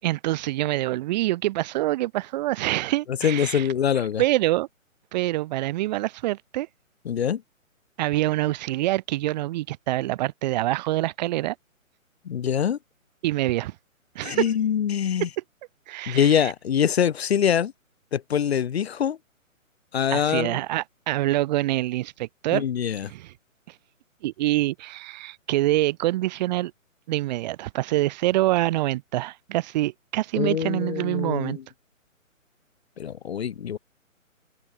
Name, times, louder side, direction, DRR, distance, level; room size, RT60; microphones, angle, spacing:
voice 1, 0.0-3.7 4.2-4.7 5.1-6.7 8.0-11.5 13.2-13.7 14.1-14.5 15.9-16.5 20.1-22.6 23.1-23.3 24.2-26.7 27.1-31.6, right 16 dB, 30° right, 5.2 m, -25 dB
voice 2, 3.2-4.2 7.1-7.4 12.3-12.8 14.2-15.3 16.1-17.7 18.1-19.2 19.9-20.6 22.5-23.1 30.4-31.6 33.0-33.8, left 8 dB, 50° left, 4.2 m, -24 dB
open air
figure-of-eight pair, 140°, 40 cm